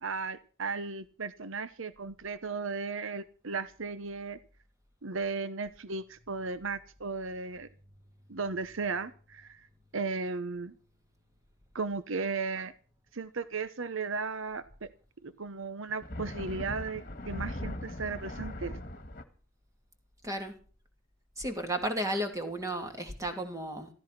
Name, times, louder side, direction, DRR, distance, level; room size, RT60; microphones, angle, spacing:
voice 1, 0.0-4.4 5.0-7.7 8.3-9.7 9.9-10.7 11.7-12.7 13.1-14.9 15.2-18.8, right 4 dB, 65° right, 14 dB, 0.9 m, -35 dB
sound 1, 15.9-19.2, left 1 dB, 40° left, 1.8 m, -39 dB
voice 2, 20.2-20.6 21.4-23.9, right 1 dB, 15° right, 5 dB, 2.6 m, -33 dB
15.0 x 14.5 x 5.9 m, 0.39 s
head